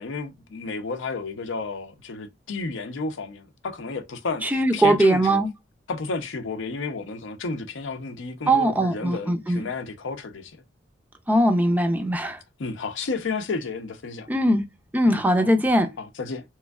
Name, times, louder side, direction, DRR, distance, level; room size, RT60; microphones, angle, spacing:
voice 1, 0.0-5.4 5.9-10.6 11.3-11.4 12.6-14.3 15.1-15.5 16.0-16.4, left 4 dB, 85° left, 0.6 m, -32 dB
voice 2, 4.4-5.5 8.5-9.6 11.3-12.4 14.3-14.7 14.9-15.9, right 1 dB, 10° right, 0.4 m, -20 dB
3.5 x 3.0 x 2.3 m
head